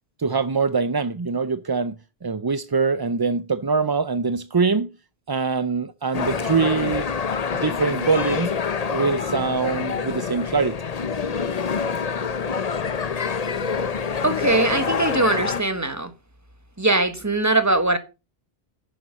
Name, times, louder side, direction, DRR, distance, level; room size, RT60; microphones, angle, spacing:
voice 1, 0.2-2.0 2.2-4.9 5.3-7.1 7.5-8.5 8.9-10.8, right 4 dB, 35° right, 0.4 m, -23 dB
sound 1, 6.1-15.6, left 6 dB, 40° left, 0.8 m, -26 dB
voice 2, 14.2-16.1 16.8-18.0, right 2 dB, 15° right, 1.3 m, -21 dB
10.5 x 7.1 x 6.4 m
omnidirectional pair, 1.0 m